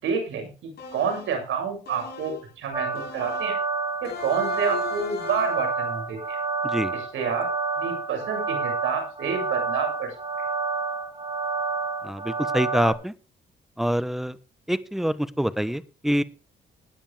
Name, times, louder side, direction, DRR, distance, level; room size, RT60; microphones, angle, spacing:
voice 1, 0.0-3.6 4.0-6.4 6.9-7.5 7.8-10.1, right 6 dB, 75° right, 3 dB, 6.6 m, -29 dB
sound 1, 0.8-1.4 1.8-2.5 2.9-3.6 4.0-5.7, left 7 dB, 55° left, 6.6 m, -38 dB
sound 2, 2.7-12.9, right 4 dB, 30° right, 7.7 m, -29 dB
voice 2, 12.0-13.1 13.8-14.3 14.7-16.2, equal, ahead, 15 dB, 1.1 m, -25 dB
16.5 x 10.0 x 3.5 m, 0.32 s
cardioid pair, 90°, 20 cm